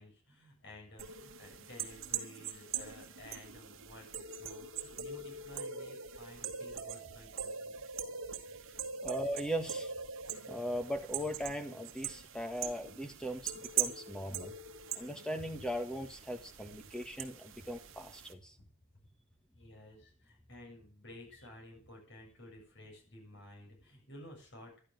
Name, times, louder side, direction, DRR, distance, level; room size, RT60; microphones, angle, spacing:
voice 1, 0.0-7.7 15.4-15.5 19.5-24.8, left 1 dB, 60° left, 1 dB, 7.5 m, -53 dB
sound 1, 1.0-18.3, right 7 dB, 75° right, 1.8 m, -42 dB
voice 2, 9.0-9.9 10.5-14.5 14.9-18.5, equal, 5° left, 5 dB, 1.7 m, -39 dB
12.0 x 11.5 x 6.6 m, 0.42 s
head